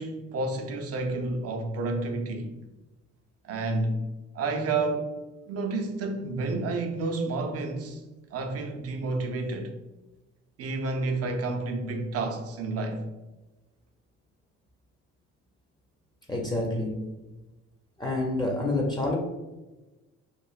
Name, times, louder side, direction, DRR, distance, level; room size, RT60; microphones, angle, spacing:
voice 1, 0.0-2.5 3.4-4.0 4.3-5.1 5.5-8.0 8.3-9.7 10.6-13.1, right 3 dB, 45° right, 0.5 m, -30 dB
voice 2, 16.3-17.0 18.0-19.2, left 2 dB, 10° left, 0.6 m, -28 dB
3.1 x 2.5 x 2.4 m
hypercardioid pair, 45°, 34 cm